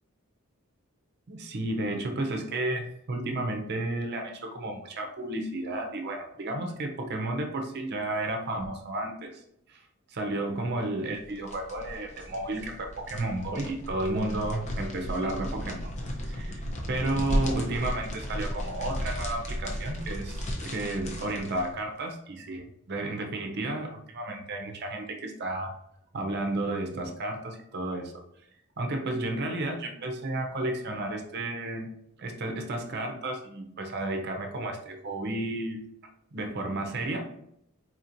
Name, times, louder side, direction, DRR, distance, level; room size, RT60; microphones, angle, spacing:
voice 1, 1.3-9.4 9.7-9.8 10.1-15.9 16.2-16.6 16.9-25.8 26.1-28.2 28.8-31.9 32.2-35.8 36.3-37.3, right 2 dB, 50° right, 3 dB, 0.6 m, -32 dB
sound 1, 11.1-21.7, equal, 35° left, 0.6 m, -35 dB
4.2 x 2.9 x 2.5 m, 0.74 s
head